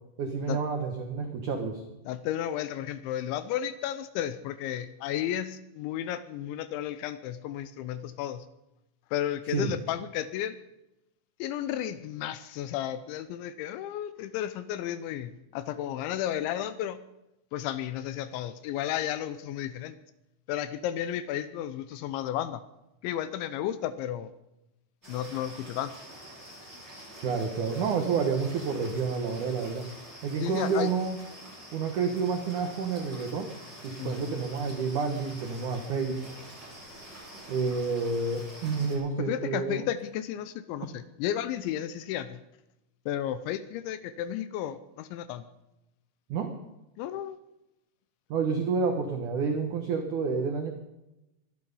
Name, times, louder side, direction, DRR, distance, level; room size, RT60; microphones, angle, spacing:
voice 1, 0.2-1.8 9.5-9.7 27.2-29.8 30.2-31.2 31.7-33.5 33.8-36.2 37.5-39.8 46.3-46.5 48.3-50.8, right 5 dB, 85° right, 4 dB, 1.7 m, -29 dB
voice 2, 2.1-8.5 9.1-10.6 11.4-17.0 17.5-20.0 20.5-22.6 23.0-24.3 25.1-25.9 30.4-30.9 34.0-34.3 39.2-42.4 43.1-45.4 47.0-47.4, left 11 dB, 80° left, 13 dB, 2.8 m, -33 dB
sound 1, 25.0-39.0, right 1 dB, 10° right, 7.4 m, -46 dB
23.5 x 10.5 x 5.4 m, 0.92 s
omnidirectional pair, 5.7 m